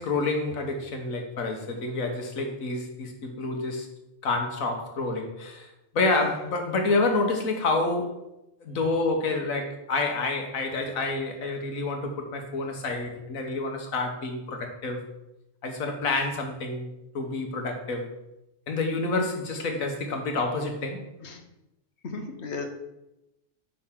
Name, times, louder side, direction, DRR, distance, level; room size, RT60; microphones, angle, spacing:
voice 1, 0.0-3.9 4.2-5.7 5.9-8.2 8.6-15.0 15.6-18.1 18.7-21.0, left 3 dB, 85° left, 4 dB, 1.6 m, -28 dB
voice 2, 22.0-22.7, left 4 dB, 55° left, 5 dB, 1.3 m, -35 dB
8.9 x 5.5 x 3.8 m, 0.91 s
omnidirectional pair, 1.4 m